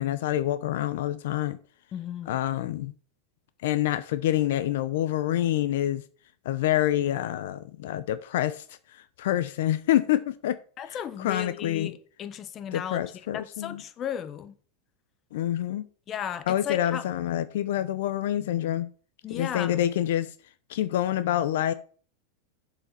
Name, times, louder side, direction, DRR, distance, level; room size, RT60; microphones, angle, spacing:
voice 1, 0.0-1.6 2.3-2.9 3.6-6.0 6.4-8.6 8.9-10.6 10.9-11.9 12.7-13.8 15.3-15.9 16.5-18.9 19.3-20.3 20.7-21.7, left 12 dB, 75° left, 0.6 m, -27 dB
voice 2, 1.9-2.4 10.8-13.0 13.3-14.5 16.1-17.1 19.2-19.8, left 9 dB, 30° left, 0.9 m, -35 dB
7.1 x 4.9 x 6.7 m
supercardioid pair, 125°, 0 cm